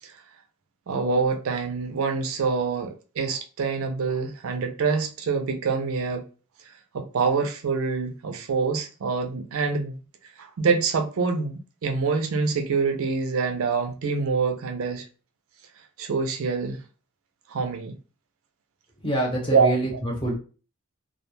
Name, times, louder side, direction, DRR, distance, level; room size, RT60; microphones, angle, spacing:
voice 1, 0.9-6.2 6.9-10.0 10.4-15.0 16.0-16.8 17.5-17.9 19.5-20.0, right 5 dB, 65° right, 0.4 m, -25 dB
voice 2, 19.0-20.3, right 1 dB, 25° left, 0.9 m, -26 dB
2.3 x 2.1 x 3.1 m
head